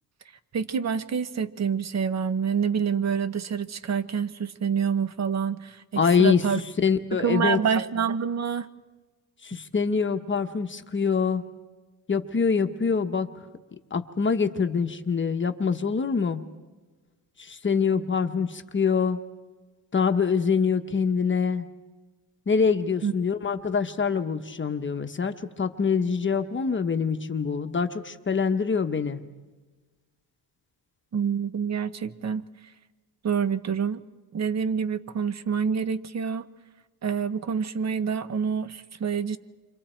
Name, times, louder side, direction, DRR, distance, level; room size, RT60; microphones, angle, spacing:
voice 1, 0.5-6.6 7.2-8.7 23.0-23.1 31.1-32.4 33.2-34.0 34.3-36.5 37.0-39.4, right 6 dB, 40° right, 12 dB, 1.0 m, -27 dB
voice 2, 6.0-6.4 6.8-7.6 9.4-11.4 12.1-13.3 13.9-16.4 17.4-19.2 19.9-21.7 22.5-29.2, left 5 dB, 25° left, 7 dB, 1.0 m, -25 dB
30.0 x 25.5 x 4.5 m, 1.3 s
cardioid pair, 125°, 43 cm